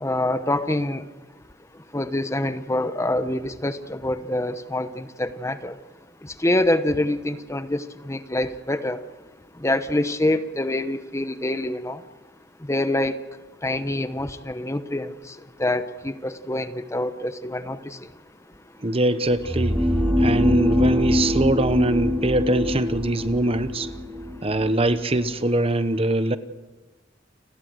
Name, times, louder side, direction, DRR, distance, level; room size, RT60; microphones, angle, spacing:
voice 1, 0.0-1.0 1.9-5.7 6.4-9.0 9.6-12.0 12.7-13.2 13.6-15.1 15.6-18.0, left 1 dB, 15° left, 10 dB, 1.0 m, -25 dB
voice 2, 18.8-19.9 20.2-23.9 24.4-26.4, right 2 dB, 30° right, 12 dB, 1.1 m, -22 dB
sound 1, 19.3-25.2, left 1 dB, 10° right, 3.6 m, -24 dB
30.0 x 20.0 x 7.9 m, 1.3 s
head